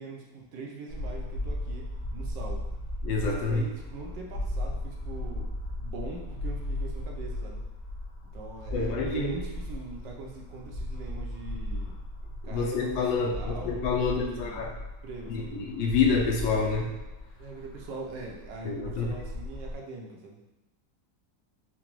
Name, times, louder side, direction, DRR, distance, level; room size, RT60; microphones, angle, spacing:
voice 1, 0.0-1.9 2.1-2.6 3.4-5.5 5.8-7.6 8.3-11.9 12.4-14.6 15.0-15.6 17.4-20.4, right 3 dB, 80° right, 0 dB, 1.3 m, -42 dB
sound 1, 0.9-19.8, left 1 dB, 55° left, 1.2 m, -36 dB
voice 2, 3.0-3.6 8.7-9.3 12.4-14.7 15.3-16.9 18.6-19.2, left 4 dB, 80° left, 1 dB, 1.3 m, -28 dB
4.8 x 2.2 x 2.9 m, 1.0 s
omnidirectional pair, 2.0 m